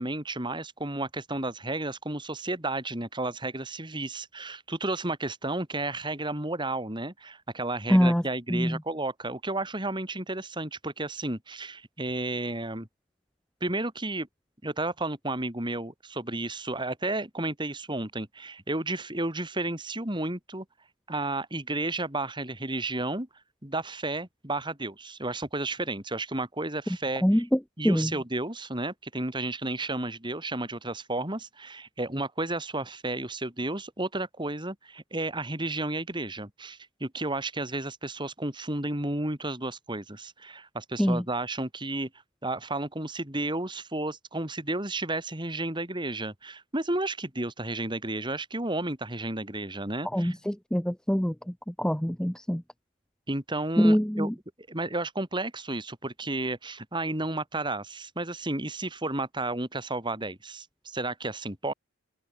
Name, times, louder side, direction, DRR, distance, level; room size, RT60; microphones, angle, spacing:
voice 1, 0.0-12.9 13.6-14.3 14.6-20.6 21.1-23.3 23.6-27.4 27.8-42.1 42.4-50.3 53.3-54.3 54.7-61.7, right 2 dB, 20° right, 3.4 m, -32 dB
voice 2, 7.9-8.2 8.5-8.8 27.2-28.1 41.0-41.2 50.1-52.6 53.8-54.3, equal, 5° left, 0.7 m, -24 dB
head